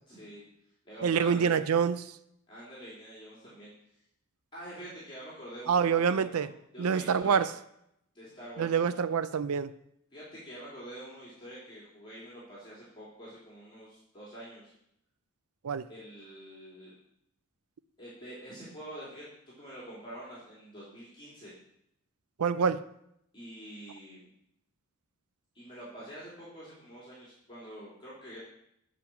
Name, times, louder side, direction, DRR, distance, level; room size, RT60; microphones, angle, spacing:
voice 1, 0.1-0.4 0.8-1.6 2.5-3.7 4.5-6.5 6.7-7.4 8.1-8.9 10.1-14.7 15.9-16.9 18.0-21.5 23.3-24.3 25.5-28.4, equal, 25° left, 3.1 m, -46 dB
voice 2, 1.0-2.1 5.7-6.5 6.8-7.5 8.6-9.7 15.6-15.9 22.4-22.8, right 6 dB, 90° right, 0.5 m, -26 dB
9.3 x 5.1 x 5.9 m
head